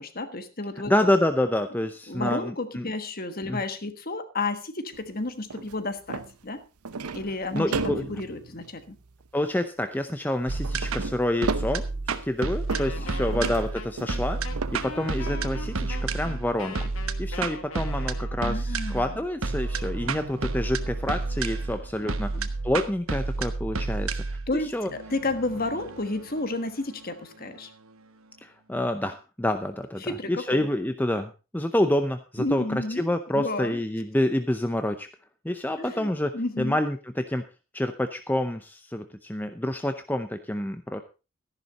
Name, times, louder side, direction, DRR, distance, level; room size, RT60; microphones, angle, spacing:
voice 1, 0.0-1.1 2.1-6.6 7.1-9.0 13.0-13.5 18.4-19.2 22.0-22.5 24.5-24.7 25.1-27.7 30.0-30.7 32.4-33.8 35.8-36.8, left 2 dB, 40° left, 9 dB, 1.4 m, -32 dB
voice 2, 0.9-2.9 3.5-3.6 7.5-8.1 9.3-14.4 14.7-16.9 17.2-22.3 22.6-24.9 28.4-35.1 35.4-37.4 37.7-41.0, left 1 dB, 10° left, 8 dB, 0.6 m, -28 dB
sound 1, 4.9-5.1 5.5-5.8 6.1-6.4 6.9-9.3 9.6-9.7 10.6-12.4 12.7-13.0 13.3-14.2 14.6-14.8 15.3-15.4, right 4 dB, 90° right, 0.8 m, -34 dB
sound 2, 10.5-27.6, right 3 dB, 65° right, 1.0 m, -31 dB
Wind instrument woodwind instrument, 12.7-18.5, left 4 dB, 70° left, 1.7 m, -41 dB
13.5 x 11.0 x 4.0 m, 0.31 s
head